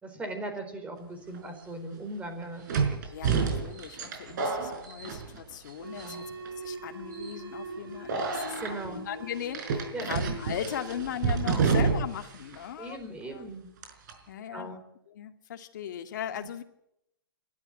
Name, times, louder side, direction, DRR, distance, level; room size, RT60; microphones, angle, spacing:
voice 1, 0.0-3.1 4.3-4.4 5.9-6.3 8.6-9.0 9.9-10.2 11.4-11.8 12.8-13.7 14.5-14.8 16.3-16.5, right 2 dB, 10° right, 6 dB, 4.3 m, -39 dB
sound 1, 1.3-1.4 2.7-5.7 6.0-6.5 7.1-7.4 8.1-8.7 9.5-12.3 12.5-12.6 13.8-14.1, right 5 dB, 55° right, 5.1 m, -29 dB
voice 2, 3.1-6.2 6.6-13.5 14.3-14.8 15.1-16.6, left 10 dB, 55° left, 7 dB, 2.2 m, -38 dB
sound 2, 5.7-13.0, right 2 dB, 75° right, 5.1 m, -43 dB
27.5 x 12.5 x 9.1 m, 0.81 s
hypercardioid pair, 140°, 12 cm